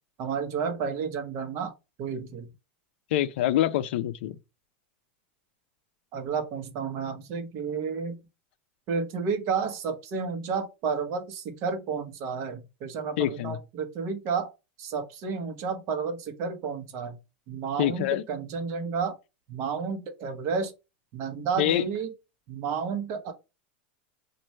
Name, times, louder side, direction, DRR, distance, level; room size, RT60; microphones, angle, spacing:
voice 1, 0.2-1.7 2.0-2.5 6.1-8.2 8.9-14.5 14.8-17.2 17.5-19.2 19.5-20.7 21.1-22.1 22.5-23.3, right 5 dB, 50° right, 1.0 m, -31 dB
voice 2, 3.1-4.4 13.2-13.6 17.8-18.2 21.6-21.8, left 13 dB, 75° left, 0.4 m, -25 dB
3.1 x 2.6 x 4.2 m
supercardioid pair, 125°, 6 cm